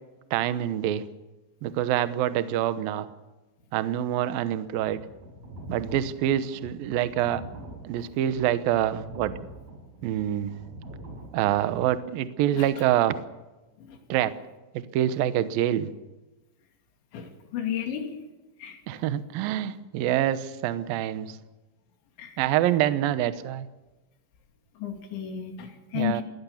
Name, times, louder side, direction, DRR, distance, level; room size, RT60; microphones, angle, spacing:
voice 1, 0.3-1.0 1.6-3.1 3.7-5.0 5.7-7.4 7.8-9.3 10.0-10.5 11.3-13.2 14.1-14.3 14.9-15.9 18.9-21.4 22.4-23.7 25.9-26.2, right 12 dB, 75° right, 12 dB, 2.1 m, -26 dB
sound 1, 4.9-11.8, right 1 dB, 35° right, 7.6 m, -44 dB
voice 2, 12.5-12.8 13.8-14.0 17.1-18.2 18.6-18.8 22.2-22.5 24.8-26.2, left 9 dB, 70° left, 4 dB, 4.8 m, -33 dB
22.0 x 17.5 x 7.1 m, 1.1 s
omnidirectional pair, 5.5 m